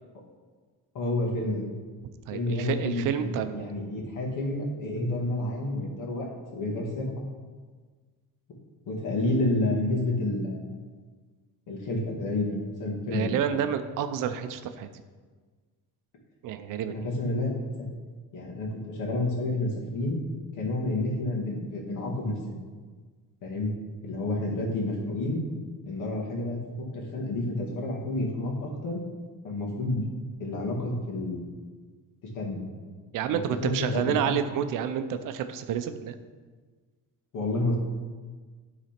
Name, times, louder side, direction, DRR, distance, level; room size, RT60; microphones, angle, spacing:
voice 1, 0.9-1.7 2.3-7.3 8.9-10.8 11.7-13.3 16.9-17.9 18.3-20.2 20.5-22.6 23.4-23.7 24.0-25.4 25.8-29.0 29.4-30.1 30.4-31.4 32.3-32.6 33.3-34.3 37.3-37.8, left 2 dB, 55° left, -1 dB, 2.0 m, -30 dB
voice 2, 2.3-3.7 13.1-14.9 16.4-17.1 33.1-36.1, right 8 dB, 60° right, 9 dB, 0.6 m, -29 dB
12.0 x 4.1 x 5.8 m, 1.4 s
cardioid pair, 175°, 36 cm